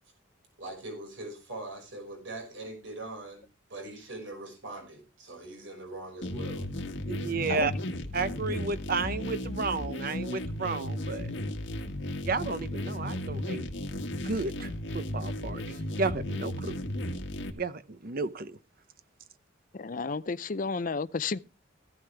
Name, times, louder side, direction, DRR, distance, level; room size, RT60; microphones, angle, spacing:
voice 1, 0.6-3.4 3.7-6.7, right 2 dB, 80° right, 5.7 m, -42 dB
sound 1, 6.2-17.5, left 1 dB, 70° left, 1.9 m, -35 dB
voice 2, 7.1-7.7 8.1-11.3 12.2-13.7 14.2-16.8 17.6-18.6, right 4 dB, 50° right, 0.9 m, -32 dB
voice 3, 19.7-21.4, left 4 dB, 45° left, 0.5 m, -32 dB
15.5 x 12.0 x 3.4 m
head